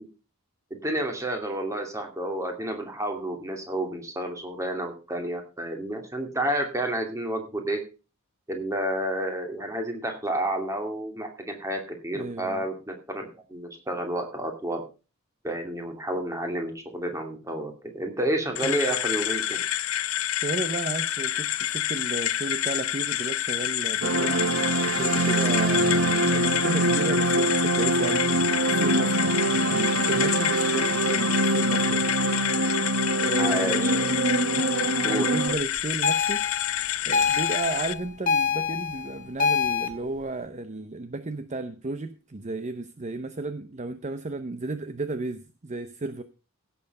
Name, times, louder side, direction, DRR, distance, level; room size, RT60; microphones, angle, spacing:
voice 1, 0.7-7.8 8.5-14.8 15.4-19.6 33.4-33.9 35.0-35.3, right 1 dB, 15° right, 4 dB, 2.5 m, -30 dB
voice 2, 12.1-12.7 18.6-18.8 20.3-32.1 33.2-34.1 34.6-36.4 37.1-46.2, right 2 dB, 35° right, 11 dB, 0.7 m, -33 dB
sound 1, 18.5-37.9, left 12 dB, 70° left, 0.6 m, -28 dB
sound 2, 24.0-35.6, right 2 dB, 75° right, 0.9 m, -24 dB
sound 3, 36.0-39.9, left 6 dB, 40° left, 1.9 m, -26 dB
16.0 x 7.0 x 5.3 m, 0.34 s
head